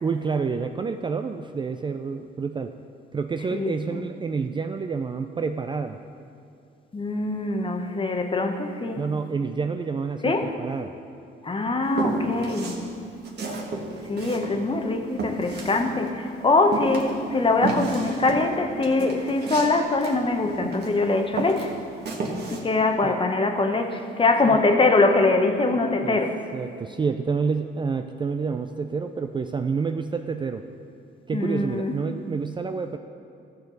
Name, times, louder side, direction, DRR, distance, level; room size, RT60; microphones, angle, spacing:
voice 1, 0.0-2.7 3.1-6.0 9.0-10.9 23.0-23.2 24.5-24.6 26.0-26.2 26.5-30.6 31.3-33.0, right 5 dB, 25° right, 7 dB, 0.3 m, -28 dB
voice 2, 3.5-4.0 6.9-9.0 10.2-10.5 11.4-12.8 14.1-21.7 22.5-26.4 31.3-32.0, left 3 dB, 25° left, 5 dB, 0.9 m, -23 dB
Walk footsteps, 11.9-12.8 13.2-16.3 16.7-21.0 21.3-22.6, right 3 dB, 55° right, 1.5 m, -31 dB
14.0 x 6.7 x 4.0 m, 2.5 s
cardioid pair, 90°, 20 cm